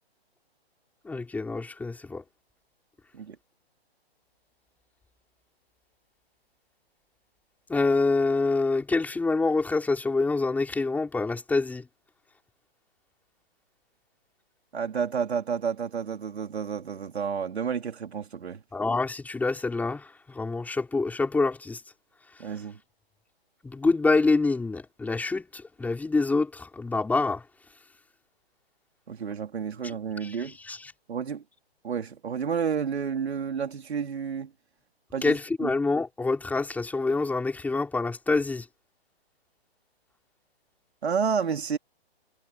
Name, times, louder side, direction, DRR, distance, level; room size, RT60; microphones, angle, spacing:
voice 1, 1.0-2.2 7.7-11.9 18.7-21.8 23.6-27.4 29.8-29.9 30.2-30.9 35.2-38.7, left 3 dB, 5° left, 5.0 m, -26 dB
voice 2, 14.7-18.6 22.4-22.8 29.1-30.6 31.1-31.4 31.8-34.5 35.1-35.7 41.0-41.8, right 6 dB, 80° right, 3.9 m, -30 dB
hypercardioid pair, 150°, 32 cm